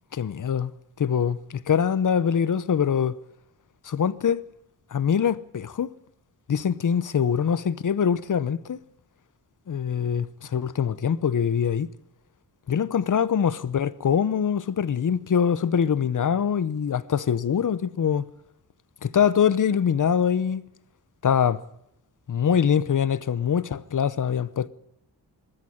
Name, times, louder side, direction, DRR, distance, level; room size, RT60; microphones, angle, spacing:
voice 1, 0.1-0.7 1.0-3.2 3.8-4.4 4.9-5.9 6.5-8.8 9.7-11.9 12.7-18.2 19.0-20.6 21.2-21.6 22.3-24.7, left 7 dB, 50° left, 0.8 m, -23 dB
20.5 x 13.0 x 10.0 m
wide cardioid pair, 145°, 39 cm